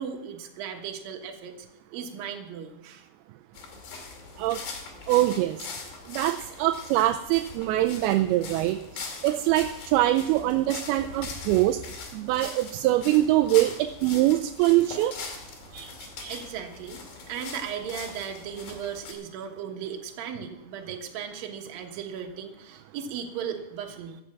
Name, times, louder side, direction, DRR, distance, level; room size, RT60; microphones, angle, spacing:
voice 1, 0.0-1.7 1.9-3.1 16.3-24.2, right 7 dB, 70° right, 3 dB, 3.0 m, -36 dB
sound 1, 3.5-19.1, left 4 dB, 75° left, 4.2 m, -41 dB
voice 2, 5.1-5.7 6.1-11.8 12.1-15.2 15.7-16.4, right 15 dB, 85° right, 7 dB, 2.5 m, -24 dB
14.5 x 8.0 x 7.5 m, 0.89 s
omnidirectional pair, 4.4 m